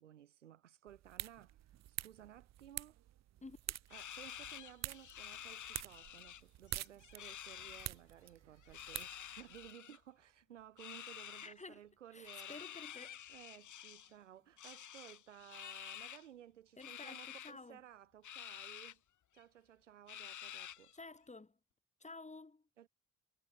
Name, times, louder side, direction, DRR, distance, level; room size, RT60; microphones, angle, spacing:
voice 1, 0.0-3.0 3.9-12.6 13.3-19.0 19.3-20.9 22.8-22.9, right 11 dB, 85° right, 2.7 m, -57 dB
sound 1, 0.9-9.7, right 13 dB, 45° right, 0.8 m, -48 dB
sound 2, 3.9-6.4 6.7-7.9 8.6-10.0 10.8-11.5 12.2-14.1 14.6-16.3 16.8-17.5 18.2-18.9 19.4-19.5 20.1-21.0, left 10 dB, 55° left, 3.6 m, -50 dB
voice 2, 11.4-11.8 12.1-13.2 16.8-17.8 20.9-21.6 22.0-22.6, left 3 dB, 20° left, 3.0 m, -52 dB
figure-of-eight pair, 40°, 36 cm